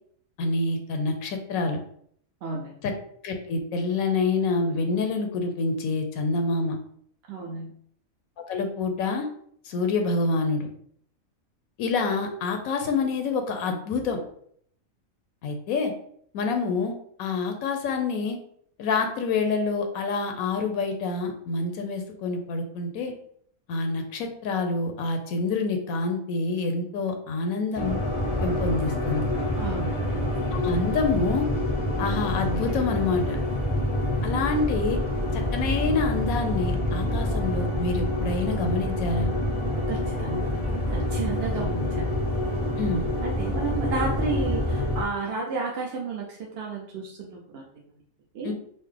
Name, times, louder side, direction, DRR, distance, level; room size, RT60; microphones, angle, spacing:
voice 1, 0.4-1.8 2.8-2.9 3.2-6.8 8.5-9.3 9.7-10.7 11.8-14.2 15.4-15.9 16.3-16.9 17.2-18.4 18.8-23.1 23.7-28.0 28.4-29.3 30.5-31.5 32.0-33.4 34.2-35.0 35.3-39.3 42.8-43.0 48.4-48.5, left 3 dB, 80° left, 5 dB, 1.0 m, -27 dB
voice 2, 2.4-2.8 7.3-7.7 29.6-30.4 39.9-42.1 43.2-47.6 48.3-48.5, right 4 dB, 60° right, -2 dB, 0.7 m, -32 dB
sound 1, 27.7-45.0, left 1 dB, 35° left, 0.5 m, -27 dB
4.2 x 2.0 x 3.2 m, 0.64 s
omnidirectional pair, 1.5 m